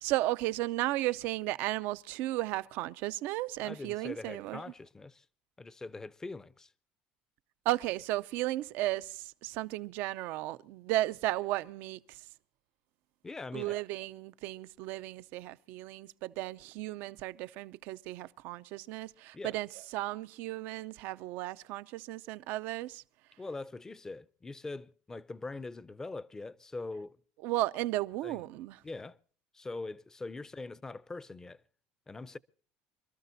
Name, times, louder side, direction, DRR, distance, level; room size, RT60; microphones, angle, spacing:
voice 1, 0.0-4.7 7.6-12.2 13.5-23.0 27.4-28.8, right 16 dB, 75° right, 0.6 m, -34 dB
voice 2, 3.6-5.2 5.6-6.7 13.2-13.8 19.3-19.6 23.4-27.2 28.2-28.4 28.8-29.2 29.5-31.6 32.1-32.4, left 3 dB, 15° left, 0.6 m, -42 dB
27.0 x 13.0 x 2.7 m
cardioid pair, 115°, 4 cm